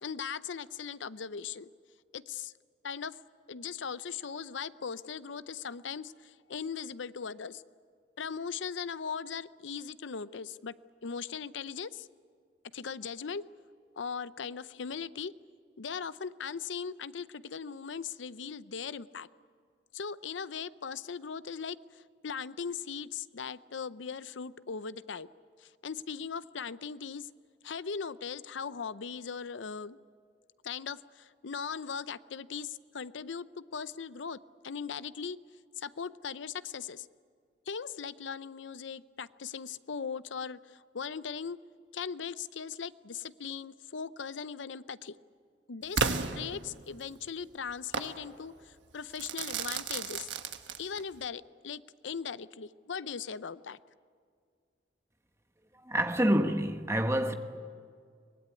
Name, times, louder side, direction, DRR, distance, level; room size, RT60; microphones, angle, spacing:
voice 1, 0.0-1.7 2.1-2.5 2.8-3.2 3.5-7.6 8.2-10.7 11.0-12.1 12.7-13.4 14.0-15.3 15.8-19.3 19.9-25.3 25.6-27.3 27.6-30.0 30.6-34.4 34.6-35.4 35.8-37.1 37.7-41.6 41.9-45.2 45.7-50.3 50.8-53.8, left 6 dB, 90° left, 0.6 m, -39 dB
Crackle / Fireworks, 46.0-47.1 47.9-48.2 49.2-51.2, right 5 dB, 80° right, 1.3 m, -33 dB
voice 2, 55.8-57.4, right 1 dB, 15° right, 1.3 m, -27 dB
24.0 x 19.5 x 9.7 m
head